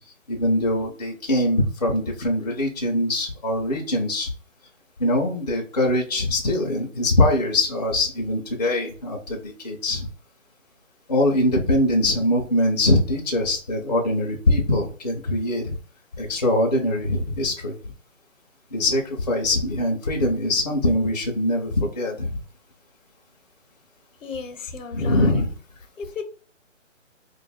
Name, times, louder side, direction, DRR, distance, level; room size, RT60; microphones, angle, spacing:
voice 1, 0.3-4.3 5.0-10.1 11.1-15.8 16.2-17.7 18.7-22.4 24.9-25.5, left 1 dB, 35° left, 0.5 m, -22 dB
voice 2, 24.2-25.3 26.0-26.2, left 5 dB, 75° left, 0.8 m, -34 dB
2.5 x 2.3 x 4.0 m
hypercardioid pair, 165°, 39 cm